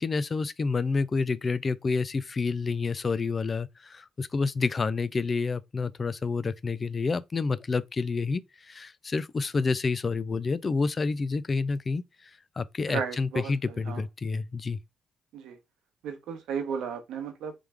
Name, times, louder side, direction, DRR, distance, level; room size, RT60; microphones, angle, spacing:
voice 1, 0.0-12.3 12.6-14.8, left 4 dB, 35° left, 0.4 m, -29 dB
voice 2, 12.9-13.5 13.9-14.0 15.3-15.6 16.0-17.5, right 6 dB, 80° right, 1.0 m, -34 dB
3.4 x 3.2 x 3.4 m
cardioid pair, 90°, 0 cm